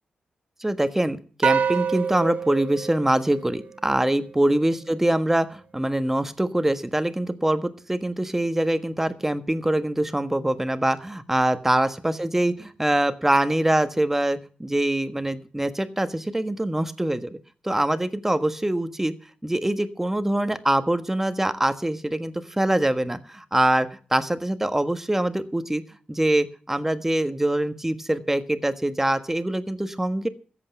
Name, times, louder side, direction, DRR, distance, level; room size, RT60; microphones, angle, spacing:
voice 1, 0.6-17.4 17.6-19.1 19.4-25.8 26.1-30.3, right 1 dB, 10° right, 10 dB, 1.4 m, -24 dB
sound 1, 1.4-4.0, right 6 dB, 70° right, 1.4 m, -26 dB
14.0 x 8.2 x 8.0 m, 0.40 s
cardioid pair, 70°, 3 cm